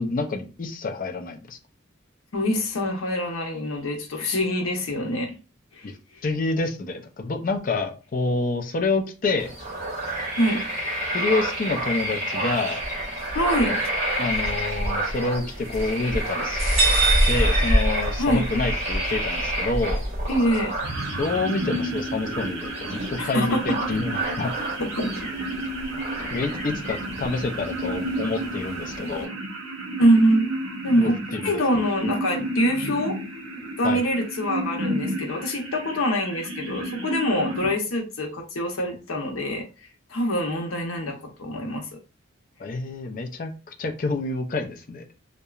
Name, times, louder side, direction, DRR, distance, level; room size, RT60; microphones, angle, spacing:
voice 1, 0.0-1.6 5.8-6.0 6.2-9.5 11.1-12.8 13.7-13.8 14.2-20.0 21.2-24.5 26.3-29.3 31.0-31.5 33.8-34.0 42.6-45.1, left 3 dB, 40° left, 0.4 m, -28 dB
voice 2, 2.3-5.4 5.7-5.9 10.4-10.6 13.3-13.7 18.2-18.5 20.3-20.7 23.2-23.8 24.8-25.1 30.0-30.5 30.8-31.2 31.4-33.2 33.8-39.7 40.1-41.9, equal, 90° left, 0.7 m, -24 dB
sound 1, 9.4-29.2, equal, 30° right, 1.3 m, -28 dB
sound 2, 16.6-18.5, right 4 dB, 50° right, 1.4 m, -25 dB
sound 3, 20.8-37.7, right 1 dB, 75° right, 0.7 m, -32 dB
2.8 x 2.1 x 2.3 m
head